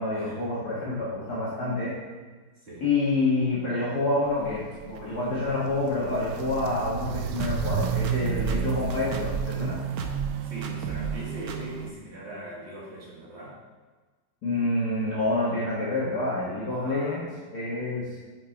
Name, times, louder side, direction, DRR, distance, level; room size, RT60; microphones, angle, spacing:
voice 1, 0.0-1.9 2.8-9.8 14.4-17.3 17.5-18.1, left 2 dB, 60° left, -7 dB, 1.9 m, -27 dB
Walk footsteps, 4.3-11.9, right 8 dB, 85° right, 1.3 m, -32 dB
sound 1, 7.4-9.5 10.0-10.3 10.6-11.2 11.5-11.6, right 5 dB, 65° right, 1.1 m, -33 dB
voice 2, 10.4-13.5 16.7-17.2, right 1 dB, 35° right, -6 dB, 2.2 m, -40 dB
6.6 x 5.0 x 4.8 m, 1.3 s
omnidirectional pair, 1.9 m